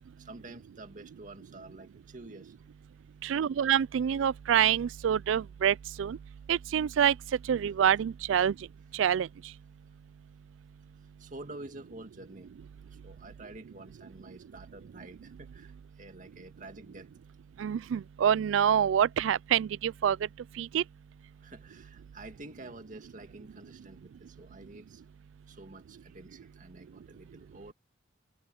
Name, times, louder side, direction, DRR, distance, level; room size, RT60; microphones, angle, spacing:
voice 1, 0.2-2.5 11.2-12.5 13.0-15.7 16.0-17.1 21.4-25.0 25.5-27.7, right 2 dB, 40° right, 2.1 m, -48 dB
voice 2, 3.2-6.2 6.5-7.1 7.5-8.5 8.9-9.3 17.6-20.2 20.6-20.8, right 9 dB, 80° right, 0.3 m, -26 dB
head